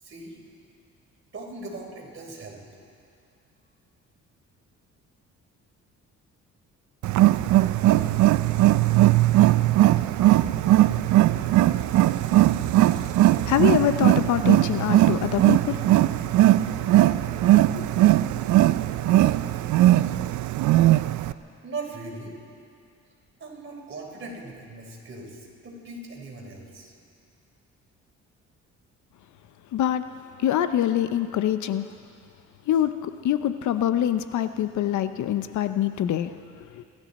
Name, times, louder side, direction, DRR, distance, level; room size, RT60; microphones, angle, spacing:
voice 1, 0.0-0.4 1.3-2.6 21.6-22.4 23.4-26.9, right 3 dB, 40° right, -2 dB, 4.1 m, -39 dB
Wild animals, 7.0-21.3, right 15 dB, 75° right, 0.5 m, -19 dB
voice 2, 13.4-15.8 16.7-16.9 17.7-17.9 29.7-30.0 30.4-31.9 32.7-36.8, left 11 dB, 70° left, 11 dB, 0.7 m, -25 dB
26.5 x 12.5 x 4.2 m, 2.4 s
cardioid pair, 90°, 30 cm